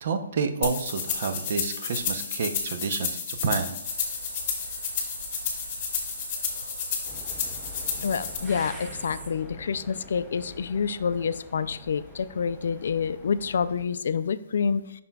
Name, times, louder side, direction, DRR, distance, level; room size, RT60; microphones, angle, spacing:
voice 1, 0.0-3.8, right 5 dB, 50° right, 8 dB, 0.7 m, -29 dB
sound 1, 0.6-8.4, left 6 dB, 30° left, 1.5 m, -31 dB
sound 2, 3.8-9.3, right 3 dB, 85° right, 1.3 m, -42 dB
sound 3, 7.1-13.8, left 1 dB, ahead, 0.6 m, -46 dB
voice 2, 8.0-14.8, left 6 dB, 65° left, 14 dB, 0.3 m, -28 dB
7.4 x 5.9 x 2.3 m, 0.87 s
hypercardioid pair, 165°, 0 cm